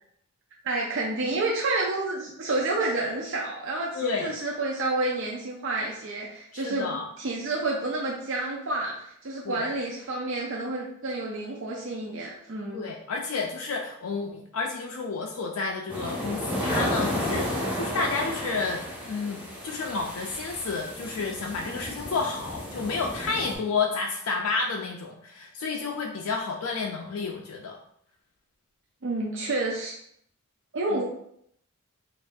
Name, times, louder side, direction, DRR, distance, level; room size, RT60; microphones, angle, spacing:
voice 1, 0.6-6.9 7.2-12.8 29.0-30.0 30.7-31.0, right 2 dB, 60° right, -2 dB, 0.5 m, -29 dB
voice 2, 3.9-4.3 6.5-7.1 9.4-9.7 12.7-27.8 30.9-31.0, left 4 dB, 80° left, 0 dB, 0.4 m, -31 dB
sound 1, 15.9-23.5, equal, 10° right, 1.1 m, -32 dB
5.6 x 2.5 x 2.6 m, 0.70 s
head